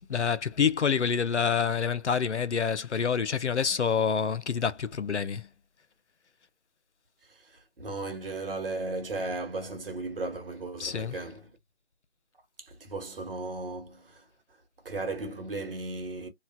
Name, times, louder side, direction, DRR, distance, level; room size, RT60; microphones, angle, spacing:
voice 1, 0.0-5.5 10.8-11.2, left 6 dB, 90° left, 0.6 m, -27 dB
voice 2, 7.4-11.5 12.6-14.2 14.8-16.3, right 2 dB, 55° right, 1.3 m, -36 dB
3.0 x 2.2 x 2.6 m
figure-of-eight pair, 160°, 33 cm